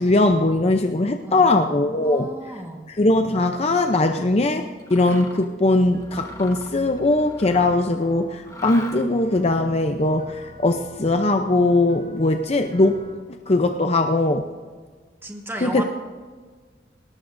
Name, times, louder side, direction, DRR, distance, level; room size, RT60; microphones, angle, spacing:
voice 1, 0.0-2.3 2.9-13.0 13.5-14.5 15.6-15.8, left 2 dB, 35° left, 5 dB, 0.6 m, -20 dB
voice 2, 1.2-2.9 15.2-15.8, right 1 dB, 15° right, 1 dB, 1.5 m, -35 dB
Mechanisms, 4.8-5.5 6.0-7.9 8.4-9.3, left 1 dB, 20° left, 1.3 m, -40 dB
sound 1, 5.7-13.2, equal, 85° right, 3.8 m, -46 dB
20.0 x 19.0 x 2.6 m, 1.5 s
head